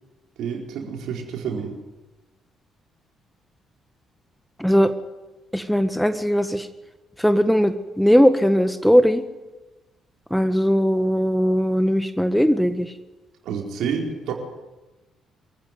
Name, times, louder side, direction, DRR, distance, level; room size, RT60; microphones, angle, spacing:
voice 1, 0.4-1.7 13.4-14.3, right 6 dB, 65° right, 1 dB, 4.5 m, -28 dB
voice 2, 4.6-4.9 5.5-6.7 7.2-9.2 10.3-12.9, equal, ahead, 10 dB, 1.6 m, -19 dB
24.5 x 15.0 x 9.4 m, 1.1 s
hypercardioid pair, 45°, 0 cm